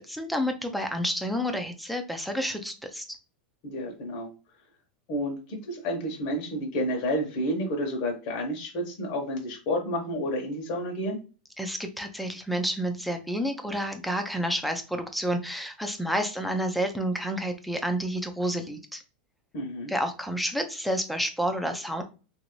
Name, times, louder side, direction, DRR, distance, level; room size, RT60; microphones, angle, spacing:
voice 1, 0.0-3.0 11.6-19.0 19.9-22.0, equal, ahead, 5 dB, 0.5 m, -29 dB
voice 2, 3.6-4.3 5.1-5.4 5.6-11.2 19.5-19.9, equal, 50° left, 0 dB, 1.0 m, -30 dB
3.0 x 2.6 x 3.0 m, 0.33 s
supercardioid pair, 140°, 5 cm